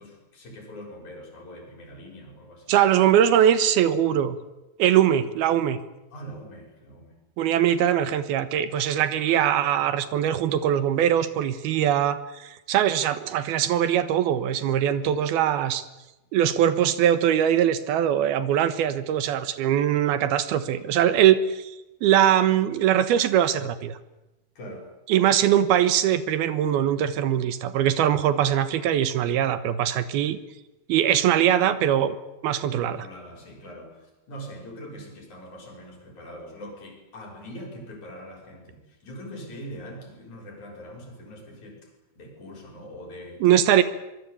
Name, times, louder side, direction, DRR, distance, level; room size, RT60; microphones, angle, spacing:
voice 1, 0.0-2.8 6.1-7.1 24.6-24.9 32.8-41.9 42.2-43.4, equal, 50° left, 2 dB, 7.2 m, -42 dB
voice 2, 2.7-4.4 4.8-5.8 7.4-15.8 16.3-21.7 22.0-24.0 25.1-30.4 30.9-32.2 32.4-33.0 43.4-43.8, right 10 dB, 80° right, 13 dB, 3.1 m, -21 dB
25.0 x 22.5 x 8.5 m, 0.99 s
omnidirectional pair, 4.6 m